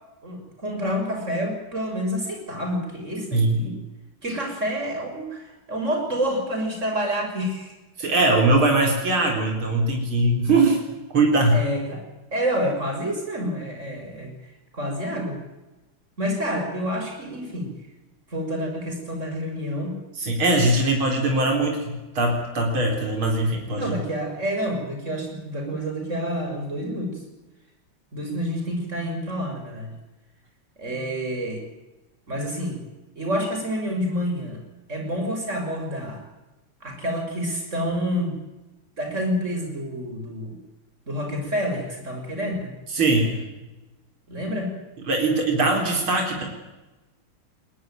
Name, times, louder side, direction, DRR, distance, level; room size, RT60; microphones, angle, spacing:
voice 1, 0.2-3.8 4.2-7.7 11.5-12.1 12.3-14.3 14.7-15.4 16.2-17.7 18.3-19.9 23.7-27.2 28.1-29.9 30.8-31.6 32.3-32.8 33.1-34.6 34.9-36.2 36.8-38.4 39.0-40.5 41.1-42.7 44.3-44.7, equal, 35° right, 3 dB, 6.9 m, -28 dB
voice 2, 8.0-10.8 11.1-11.6 20.2-23.8 42.9-43.3 45.1-46.4, right 2 dB, 80° right, 1 dB, 5.0 m, -21 dB
22.0 x 20.0 x 9.3 m, 1.1 s
omnidirectional pair, 2.2 m